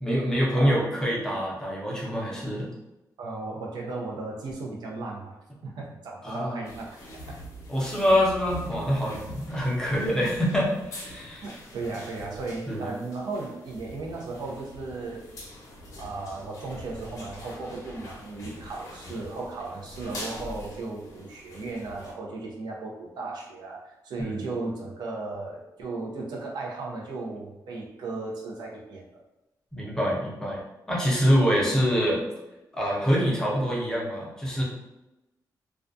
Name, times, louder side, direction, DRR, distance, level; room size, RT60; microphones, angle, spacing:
voice 1, 0.0-2.7 6.2-6.6 7.7-11.5 12.7-12.9 24.2-24.5 29.7-30.6 30.9-32.2 32.7-34.6, equal, 10° left, -4 dB, 0.6 m, -25 dB
voice 2, 0.6-0.9 3.2-7.4 11.4-15.3 16.0-29.2, right 3 dB, 85° right, -1 dB, 0.5 m, -36 dB
sound 1, 6.6-22.1, left 1 dB, 50° left, 0.7 m, -43 dB
2.3 x 2.2 x 2.5 m, 0.95 s
wide cardioid pair, 160°, 7 cm